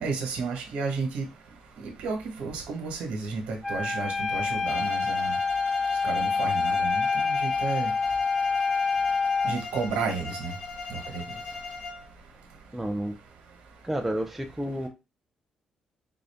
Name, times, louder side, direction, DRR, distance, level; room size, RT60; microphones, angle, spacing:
voice 1, 0.0-1.2 1.8-5.3 6.0-7.9 9.4-10.5 10.9-11.2, right 4 dB, 85° right, 3 dB, 1.2 m, -32 dB
Wind instrument woodwind instrument, 3.6-9.6, left 4 dB, 10° left, 1.0 m, -26 dB
Bowed string instrument, 4.7-12.1, left 3 dB, 60° left, 0.9 m, -39 dB
voice 2, 12.7-13.1 13.8-14.9, right 1 dB, 5° right, 3 dB, 0.4 m, -30 dB
3.9 x 2.4 x 3.4 m, 0.26 s
cardioid pair, 155°, 2 cm